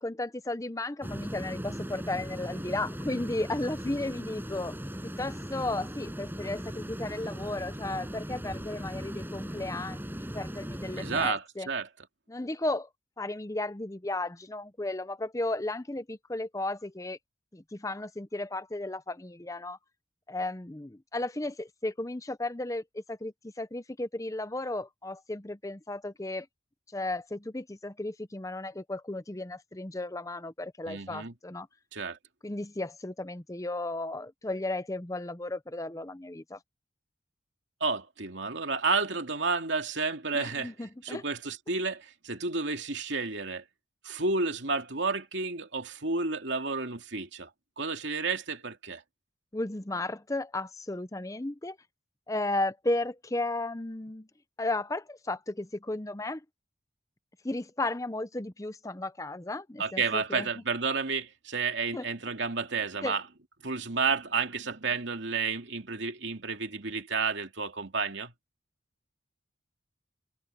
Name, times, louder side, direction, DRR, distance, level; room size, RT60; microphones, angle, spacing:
voice 1, 0.0-4.8 5.0-11.7 12.3-12.9 13.2-17.2 17.5-19.8 20.3-26.5 26.9-31.7 32.4-36.6 40.3-41.2 49.5-51.8 52.3-54.3 54.6-56.4 57.4-60.5 61.9-62.1 63.0-63.2, left 2 dB, 15° left, 0.7 m, -34 dB
sound 1, 1.0-11.3, equal, 10° right, 7.9 m, -38 dB
voice 2, 11.0-11.9 30.9-31.3 31.9-32.2 37.8-40.7 41.0-43.6 44.0-47.5 47.8-49.0 59.8-63.2 63.6-68.3, right 4 dB, 75° right, 2.7 m, -31 dB
head